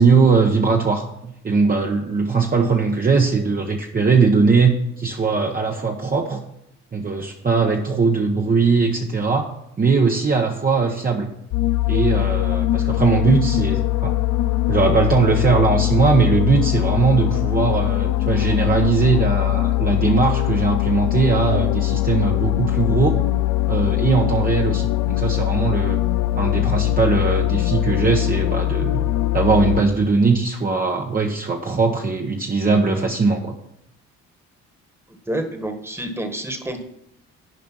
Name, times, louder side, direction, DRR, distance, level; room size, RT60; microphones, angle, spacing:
voice 1, 0.0-6.4 6.9-9.5 9.8-11.3 11.9-14.2 14.7-23.2 23.7-26.0 26.4-29.1 29.3-33.5, right 4 dB, 30° right, 1 dB, 1.0 m, -20 dB
sound 1, 11.5-29.8, left 16 dB, 75° left, 0.5 m, -21 dB
voice 2, 35.1-36.8, right 1 dB, 10° right, 6 dB, 1.5 m, -28 dB
11.0 x 5.0 x 6.1 m, 0.79 s
cardioid pair, 90°, 30 cm